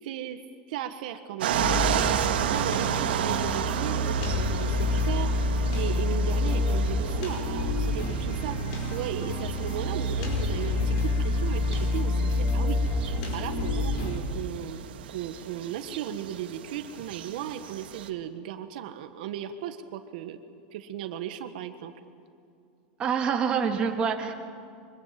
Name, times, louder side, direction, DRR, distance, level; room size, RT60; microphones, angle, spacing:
voice 1, 0.0-0.4 0.7-8.6 8.9-12.8 13.3-14.8 15.1-20.4 20.7-21.9, right 10 dB, 60° right, 8 dB, 1.4 m, -36 dB
sound 1, 1.4-18.1, right 10 dB, 85° right, 1.8 m, -34 dB
sound 2, 1.5-14.2, left 2 dB, 50° left, 5.0 m, -28 dB
voice 2, 23.0-24.3, right 6 dB, 20° right, 3 dB, 1.9 m, -26 dB
24.5 x 23.5 x 7.6 m, 2.5 s
supercardioid pair, 170°, 5 cm